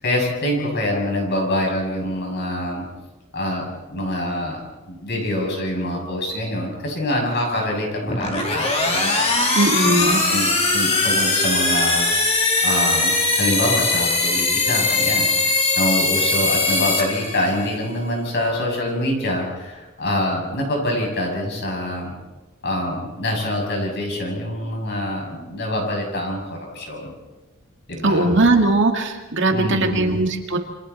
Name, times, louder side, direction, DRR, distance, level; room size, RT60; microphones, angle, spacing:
voice 1, 0.0-2.8 3.3-3.7 3.9-9.2 9.8-22.1 22.6-27.1 27.9-28.3 29.5-30.2, left 1 dB, 50° left, 0 dB, 7.2 m, -25 dB
sound 1, 8.1-17.8, left 3 dB, 30° left, 2.8 m, -20 dB
voice 2, 9.6-10.2 28.0-30.6, right 2 dB, 55° right, 3 dB, 2.3 m, -19 dB
28.5 x 25.5 x 4.3 m, 1.2 s
head